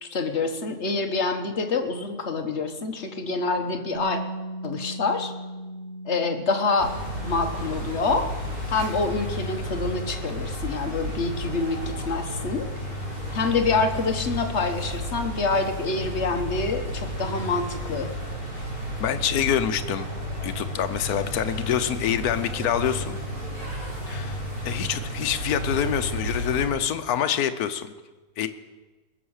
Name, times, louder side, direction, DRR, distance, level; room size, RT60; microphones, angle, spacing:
voice 1, 0.0-4.2 4.6-5.3 6.1-8.3 8.7-12.7 13.3-18.1, left 3 dB, 50° left, 5 dB, 1.4 m, -26 dB
Bass guitar, 3.9-10.2, right 1 dB, 45° right, 1.5 m, -39 dB
sound 1, 6.8-26.7, equal, 70° right, 5.1 m, -32 dB
voice 2, 19.0-20.1 20.4-23.2 24.1-24.4 24.6-27.9 28.4-28.5, left 9 dB, 75° left, 9 dB, 1.3 m, -26 dB
20.5 x 7.2 x 6.5 m, 1.2 s
omnidirectional pair, 1.6 m